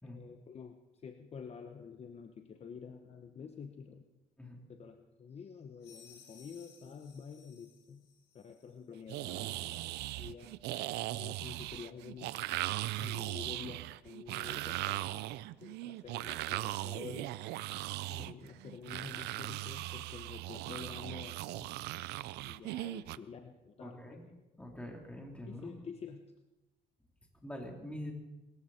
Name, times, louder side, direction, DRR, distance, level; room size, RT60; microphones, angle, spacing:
voice 1, 0.0-4.0 4.7-8.1 8.3-10.5 11.2-12.3 13.0-17.3 18.1-21.7 22.4-24.4 25.5-26.3, left 6 dB, 40° left, 7 dB, 1.0 m, -49 dB
sound 1, 5.8-8.8, left 6 dB, 80° left, 3.4 m, -60 dB
sound 2, 9.1-23.2, right 17 dB, 85° right, 0.5 m, -39 dB
voice 2, 23.8-24.2 24.6-25.7 27.4-28.1, left 1 dB, 5° left, 1 dB, 3.5 m, -45 dB
23.0 x 14.0 x 4.3 m, 1.0 s
cardioid pair, 110°, 17 cm